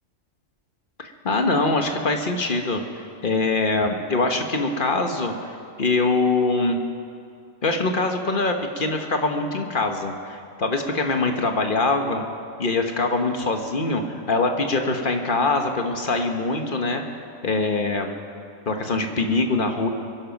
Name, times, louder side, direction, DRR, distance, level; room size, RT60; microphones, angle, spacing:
voice 1, 1.0-2.8 3.2-5.3 5.8-6.8 7.6-12.2 12.6-17.0 17.4-18.1 18.7-19.9, left 3 dB, 40° left, 4 dB, 1.3 m, -23 dB
23.0 x 12.0 x 5.3 m, 2.4 s
omnidirectional pair, 1.4 m